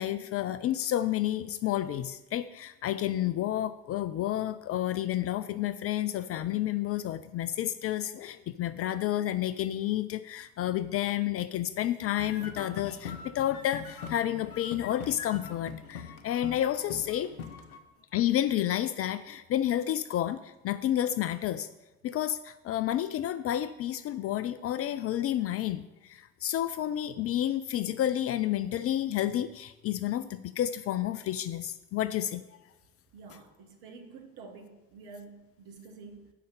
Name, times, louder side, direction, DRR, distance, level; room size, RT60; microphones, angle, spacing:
voice 1, 0.0-17.3 18.1-21.7 22.0-32.4, left 12 dB, 35° left, 13 dB, 0.4 m, -30 dB
sound 1, 12.2-17.8, left 6 dB, 80° left, 0.8 m, -42 dB
voice 2, 33.1-36.3, right 4 dB, 55° right, 4 dB, 1.6 m, -49 dB
8.4 x 5.6 x 6.7 m, 1.1 s
figure-of-eight pair, 50°, 43 cm